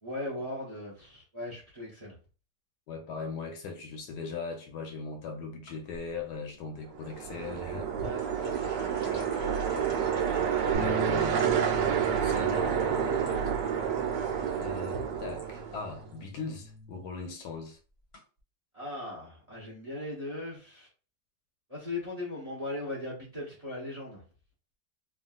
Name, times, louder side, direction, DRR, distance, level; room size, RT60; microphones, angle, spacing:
voice 1, 0.0-2.2 8.0-10.6 18.7-20.9 21.7-24.2, left 2 dB, 30° right, 0.8 m, -39 dB
voice 2, 2.9-7.9 10.8-11.4 12.2-13.6 14.6-17.8, left 4 dB, 70° left, 1.2 m, -39 dB
sound 1, 5.7-6.1 7.5-15.5 15.8-16.4 16.7-17.0 17.7-17.8 18.1-18.2, left 2 dB, 40° left, 0.9 m, -48 dB
sound 2, 7.0-16.0, right 8 dB, 80° right, 1.2 m, -29 dB
sound 3, 10.7-17.0, left 1 dB, 55° right, 1.1 m, -41 dB
3.4 x 2.4 x 2.3 m
omnidirectional pair, 1.9 m